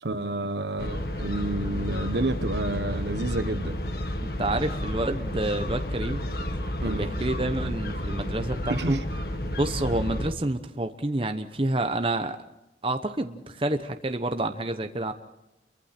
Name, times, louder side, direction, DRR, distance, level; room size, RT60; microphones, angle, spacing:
voice 1, 0.0-3.8 6.8-7.1 8.7-9.0, right 2 dB, 75° right, 10 dB, 1.3 m, -29 dB
sound 1, 0.8-10.3, left 1 dB, 55° left, 1.6 m, -31 dB
voice 2, 4.2-6.2 6.8-9.0 9.6-12.4 12.8-15.1, right 2 dB, 30° right, 6 dB, 0.9 m, -28 dB
29.0 x 23.5 x 4.4 m, 0.91 s
head